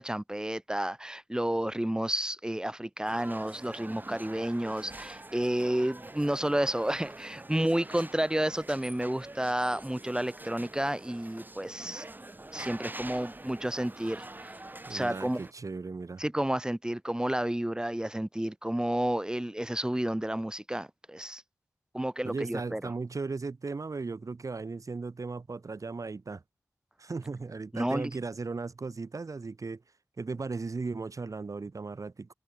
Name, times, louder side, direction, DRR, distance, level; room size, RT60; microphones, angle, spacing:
voice 1, 0.0-12.0 12.5-14.5 14.9-15.4 16.2-21.4 21.9-22.8 27.7-28.1, right 1 dB, 10° right, 3.3 m, -31 dB
sound 1, 3.1-15.5, right 2 dB, 30° right, 4.6 m, -45 dB
voice 2, 14.8-16.2 22.2-26.4 27.0-29.8 30.2-32.3, right 4 dB, 60° right, 2.5 m, -36 dB
cardioid pair, 55°, 6 cm